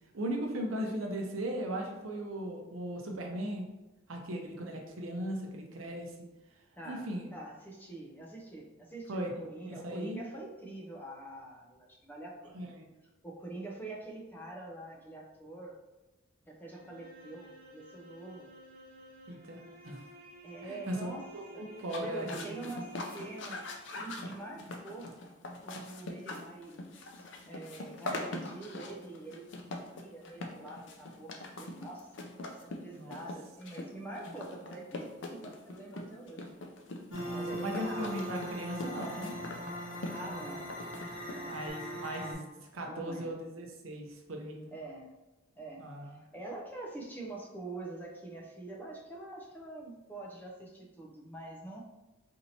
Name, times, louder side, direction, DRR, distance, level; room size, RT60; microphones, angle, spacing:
voice 1, 0.1-3.6 4.1-6.1 6.8-7.3 9.1-10.2 12.5-12.9 19.3-20.0 20.6-21.0 21.3-22.6 32.9-33.2 37.1-39.4 40.2-40.5 41.5-44.7 45.8-46.3, right 1 dB, 85° right, 1 dB, 0.7 m, -38 dB
voice 2, 6.8-12.7 13.2-15.8 16.5-18.5 20.4-21.3 21.5-21.7 22.0-23.6 23.9-25.1 25.6-29.6 29.9-36.6 37.3-38.3 39.9-40.8 41.2-41.6 42.9-43.3 44.7-45.1 45.6-51.8, right 2 dB, 10° left, -2 dB, 0.5 m, -45 dB
sound 1, 16.7-24.0, equal, 45° right, 0.6 m, -54 dB
sound 2, 21.8-41.7, left 2 dB, 60° left, 0.5 m, -43 dB
sound 3, 37.1-42.3, equal, 80° left, 1.0 m, -40 dB
4.3 x 2.8 x 2.7 m, 1.1 s
head